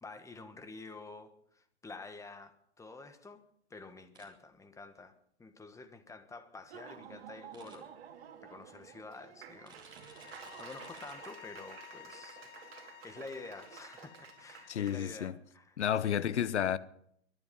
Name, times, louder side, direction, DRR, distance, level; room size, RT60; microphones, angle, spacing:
voice 1, 0.0-3.4 3.7-7.9 8.4-12.4 13.0-16.3, left 3 dB, 10° left, 1.4 m, -49 dB
sound 1, 4.1-4.3 7.5-7.8 9.6-11.1, right 4 dB, 15° right, 3.4 m, -57 dB
Laughter / Applause, 6.6-15.0, right 8 dB, 60° right, 2.3 m, -51 dB
sound 2, 9.9-15.0, left 14 dB, 45° left, 1.2 m, -54 dB
voice 2, 14.7-15.4 15.8-16.8, left 9 dB, 80° left, 1.0 m, -31 dB
22.5 x 10.5 x 5.4 m
hypercardioid pair, 120°, 34 cm